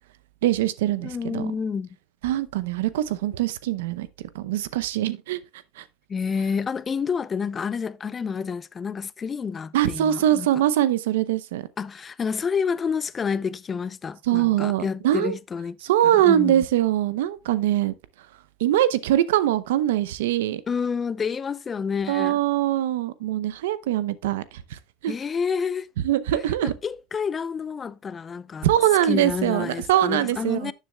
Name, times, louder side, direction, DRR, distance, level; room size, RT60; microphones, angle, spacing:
voice 1, 0.4-1.5 2.2-4.1 4.3-5.4 5.8-5.9 9.7-11.7 14.3-15.4 15.8-17.9 18.6-20.6 22.1-25.1 26.0-26.7 28.6-30.7, right 12 dB, 90° right, 0.7 m, -23 dB
voice 2, 1.0-1.9 6.1-10.6 11.8-15.8 16.0-16.6 20.7-22.4 25.1-25.9 26.6-28.7 29.0-30.7, left 6 dB, 25° left, 0.4 m, -29 dB
11.5 x 7.4 x 2.3 m
supercardioid pair, 120°, 0 cm